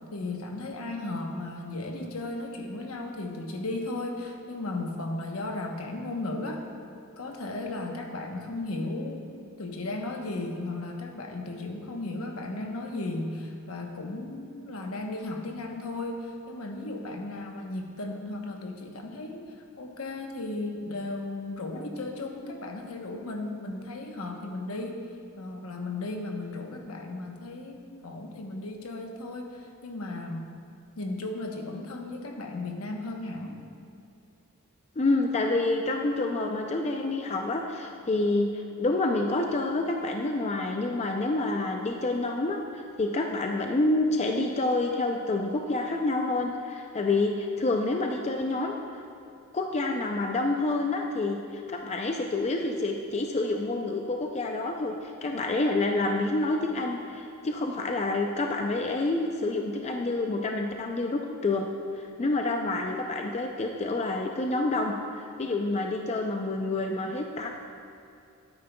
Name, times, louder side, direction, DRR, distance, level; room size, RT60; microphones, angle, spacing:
voice 1, 0.1-6.6 7.2-9.3 9.6-25.1 25.4-30.6 31.0-33.6, left 2 dB, 75° left, 2 dB, 1.0 m, -35 dB
voice 2, 35.0-48.8 49.5-61.7 61.9-67.5, left 2 dB, 30° left, 2 dB, 0.4 m, -28 dB
12.0 x 9.5 x 2.3 m, 2.6 s
head